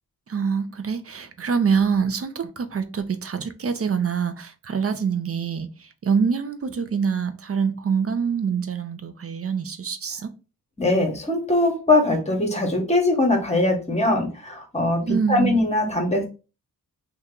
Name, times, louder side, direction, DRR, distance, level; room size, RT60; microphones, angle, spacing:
voice 1, 0.3-10.3 15.0-15.6, right 6 dB, 40° right, 0.5 m, -25 dB
voice 2, 10.8-16.3, left 2 dB, 20° left, 1.0 m, -21 dB
2.8 x 2.3 x 3.6 m
cardioid pair, 70°, 36 cm